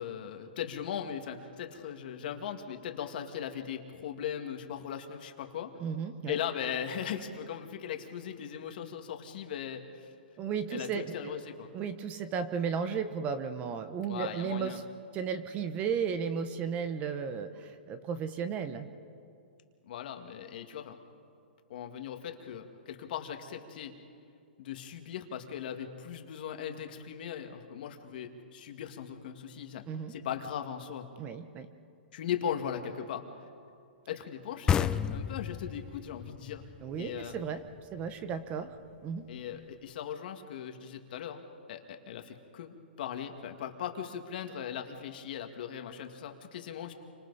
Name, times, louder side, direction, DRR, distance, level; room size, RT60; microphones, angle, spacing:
voice 1, 0.0-5.7 6.3-10.1 10.7-11.7 14.0-14.8 19.9-21.0 21.7-23.9 24.6-31.1 32.1-33.2 34.1-36.6 37.0-37.4 39.3-46.9, left 9 dB, 55° left, 5 dB, 2.1 m, -39 dB
voice 2, 5.8-6.4 10.4-11.3 11.7-14.8 15.1-18.9 29.9-30.1 31.2-31.7 36.8-37.6 37.9-38.7 39.0-39.3, right 6 dB, 25° right, 10 dB, 1.0 m, -34 dB
sound 1, 34.7-38.1, left 8 dB, 15° left, 0.5 m, -32 dB
29.5 x 25.5 x 4.2 m, 2.4 s
hypercardioid pair, 155°, 6 cm